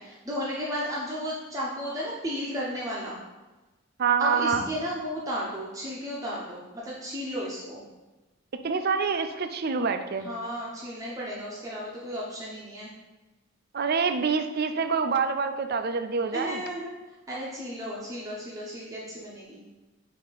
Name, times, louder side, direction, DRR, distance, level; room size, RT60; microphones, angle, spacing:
voice 1, 0.0-3.2 4.2-7.8 10.2-12.9 16.3-16.9 17.3-19.6, equal, 15° right, -6 dB, 0.9 m, -34 dB
voice 2, 4.0-4.6 8.6-10.3 13.7-16.6, right 5 dB, 50° right, 7 dB, 0.5 m, -26 dB
8.4 x 2.8 x 4.1 m, 1.1 s
head